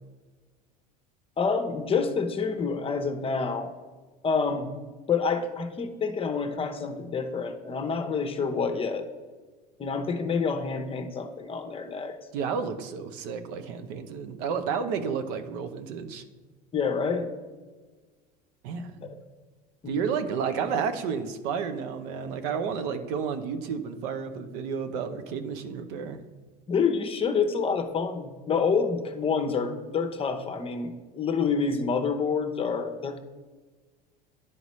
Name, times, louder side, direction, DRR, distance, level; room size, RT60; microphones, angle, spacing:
voice 1, 1.4-3.7 4.2-4.7 5.1-9.1 9.8-12.2 16.7-17.3 19.8-20.0 26.7-33.2, left 5 dB, 25° left, 7 dB, 0.8 m, -27 dB
voice 2, 12.3-16.2 18.6-19.2 19.9-26.2, right 6 dB, 70° right, 9 dB, 0.7 m, -31 dB
10.5 x 4.0 x 3.1 m, 1.3 s
supercardioid pair, 95°, 20 cm